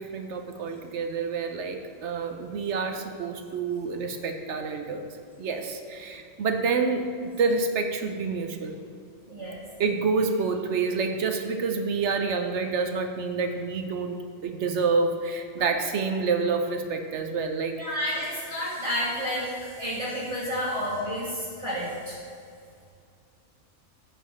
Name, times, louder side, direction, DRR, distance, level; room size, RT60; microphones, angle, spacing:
voice 1, 0.0-5.1 5.4-7.1 7.4-8.8 9.8-18.0, right 4 dB, 65° right, 6 dB, 1.0 m, -28 dB
voice 2, 9.3-9.6 15.6-15.7 17.8-22.2, equal, 20° right, -9 dB, 2.0 m, -30 dB
13.5 x 8.0 x 3.2 m, 2.3 s
omnidirectional pair, 1.4 m